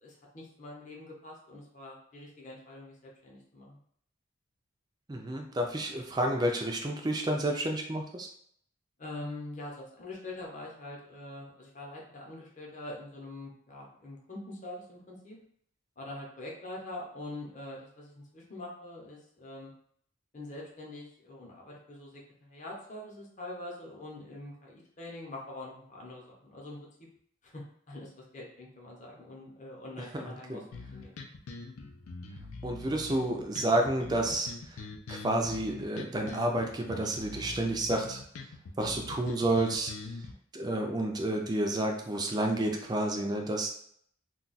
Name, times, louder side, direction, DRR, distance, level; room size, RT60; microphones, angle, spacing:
voice 1, 0.0-3.8 9.0-15.4 16.0-19.7 20.3-27.1 27.4-31.1, left 2 dB, 35° left, -3 dB, 0.7 m, -44 dB
voice 2, 5.1-8.3 30.1-30.6 32.6-34.8 35.1-38.2 38.8-40.1 40.5-43.7, right 1 dB, 20° right, 2 dB, 0.4 m, -30 dB
sound 1, 30.7-40.3, left 3 dB, 85° left, 0.4 m, -43 dB
2.3 x 2.3 x 3.9 m, 0.64 s
head